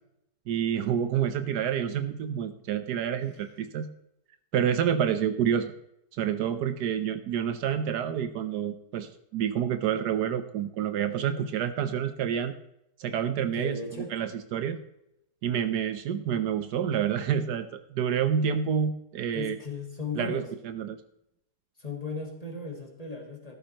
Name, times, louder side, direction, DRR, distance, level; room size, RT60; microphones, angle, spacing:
voice 1, 0.5-3.9 4.5-5.8 6.2-12.5 13.0-13.8 14.1-14.8 15.4-19.6 20.2-21.0, right 8 dB, 80° right, 11 dB, 1.3 m, -28 dB
voice 2, 13.5-14.1 19.3-20.5 21.8-23.5, left 3 dB, 25° left, 2 dB, 1.8 m, -36 dB
13.0 x 12.0 x 3.0 m, 0.81 s
omnidirectional pair, 1.8 m